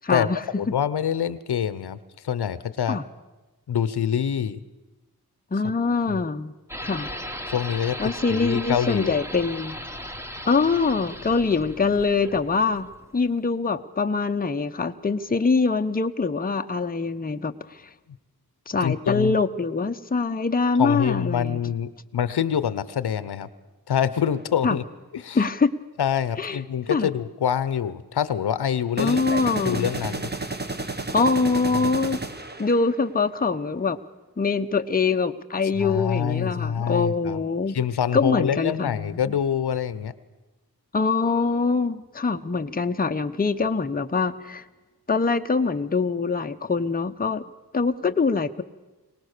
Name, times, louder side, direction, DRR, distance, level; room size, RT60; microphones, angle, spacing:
voice 1, 0.0-0.4 2.9-3.0 5.5-6.5 6.8-7.1 8.0-9.8 10.5-12.9 13.1-17.8 18.7-21.6 24.6-24.8 25.3-25.7 26.4-26.6 26.9-27.1 29.0-29.9 31.1-32.2 32.6-34.0 34.4-37.8 38.1-39.4 40.9-44.6 45.1-47.4 47.7-48.6, left 4 dB, 25° left, 7 dB, 0.8 m, -24 dB
voice 2, 0.6-2.0 2.2-3.0 3.7-4.6 6.1-6.2 7.5-9.2 18.8-19.4 20.8-23.5 23.9-24.8 25.1-25.4 26.0-30.3 35.8-37.4 37.7-40.1, left 8 dB, 85° left, 16 dB, 0.9 m, -26 dB
sound 1, 6.7-13.3, equal, 5° right, 1.4 m, -37 dB
sound 2, 24.2-24.4 29.0-33.1, right 3 dB, 25° right, 1.3 m, -32 dB
23.5 x 19.0 x 6.7 m, 1.1 s
wide cardioid pair, 90°, 38 cm